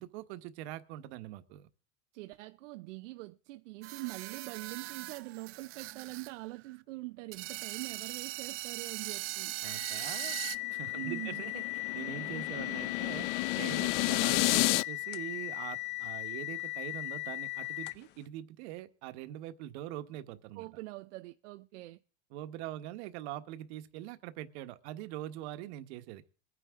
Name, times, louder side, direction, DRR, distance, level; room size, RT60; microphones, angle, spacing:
voice 1, 0.0-1.7 9.6-10.4 10.7-20.7 22.3-26.2, right 13 dB, 65° right, 1.4 m, -43 dB
voice 2, 2.1-9.5 10.9-11.5 20.6-22.0, right 21 dB, 80° right, 0.7 m, -44 dB
sound 1, 3.8-6.3 6.6-6.7 7.3-10.6, right 18 dB, 40° right, 0.5 m, -40 dB
sound 2, 9.6-18.2, left 26 dB, 30° left, 0.6 m, -38 dB
sound 3, 10.5-14.8, left 20 dB, 80° left, 0.5 m, -31 dB
22.0 x 9.8 x 3.7 m
supercardioid pair, 140°, 36 cm